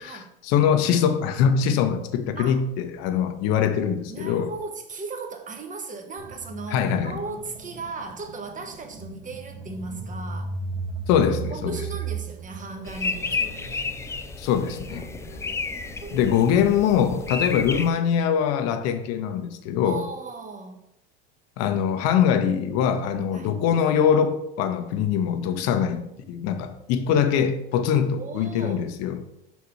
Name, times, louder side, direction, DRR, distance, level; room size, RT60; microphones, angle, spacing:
voice 1, 0.0-4.5 6.7-7.2 11.1-11.8 14.4-15.1 16.1-20.0 21.6-29.2, left 8 dB, 55° left, 0.9 m, -23 dB
voice 2, 4.1-10.6 11.3-13.9 14.9-16.3 19.8-20.8 23.3-23.5 28.2-28.9, right 4 dB, 25° right, 1.1 m, -37 dB
sound 1, 6.2-16.6, right 4 dB, 45° right, 2.4 m, -37 dB
sound 2, 12.9-17.9, left 4 dB, 10° left, 0.3 m, -31 dB
5.8 x 4.1 x 4.8 m
hypercardioid pair, 95°, 30 cm